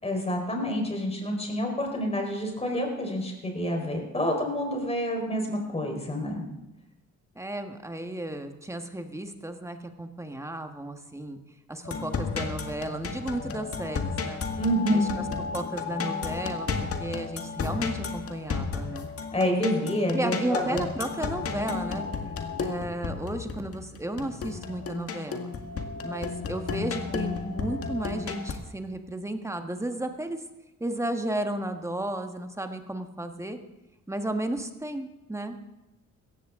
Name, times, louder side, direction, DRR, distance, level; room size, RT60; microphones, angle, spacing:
voice 1, 0.0-6.4 14.6-15.1 19.3-20.8, equal, 20° left, 2 dB, 4.4 m, -28 dB
voice 2, 7.3-11.4 11.7-14.4 14.9-15.0 15.5-16.7 17.0-19.1 20.1-22.1 22.6-25.5 26.0-30.4 30.8-33.6 34.1-35.6, right 1 dB, 10° right, 6 dB, 1.5 m, -33 dB
sound 1, 11.8-28.5, left 5 dB, 50° left, 1.8 m, -33 dB
17.0 x 14.5 x 3.7 m, 1.0 s
cardioid pair, 90°, 30 cm